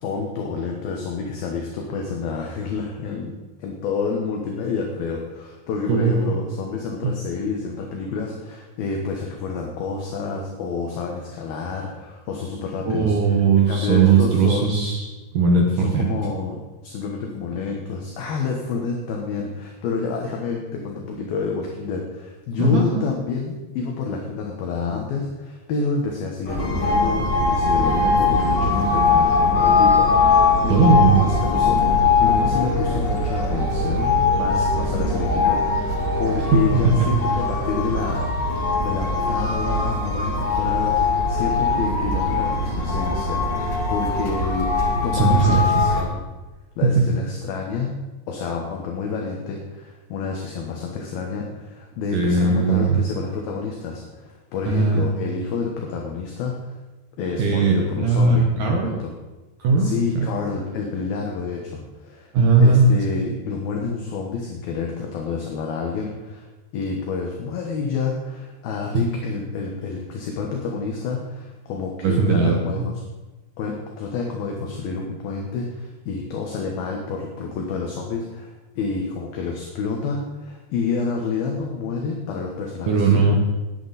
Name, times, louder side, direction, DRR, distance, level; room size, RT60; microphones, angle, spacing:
voice 1, 0.0-3.3 3.6-13.4 13.7-14.9 15.8-44.7 45.0-46.2 46.8-47.9 48.3-56.7 57.2-59.1 59.8-62.3 62.6-66.5 66.7-73.0 73.6-83.2, left 5 dB, 65° left, 0 dB, 2.6 m, -29 dB
voice 2, 5.9-6.3 7.0-7.1 12.9-16.1 22.6-23.0 30.7-31.2 36.5-37.0 45.1-45.8 46.8-47.0 52.1-53.0 54.7-55.1 57.4-59.0 59.6-60.3 62.3-62.9 68.9-69.1 72.0-72.8 82.9-83.4, right 4 dB, 70° right, 0 dB, 2.0 m, -18 dB
sound 1, 26.5-46.0, left 3 dB, 50° left, 1.3 m, -21 dB
19.0 x 8.6 x 4.2 m, 1.2 s
omnidirectional pair, 5.6 m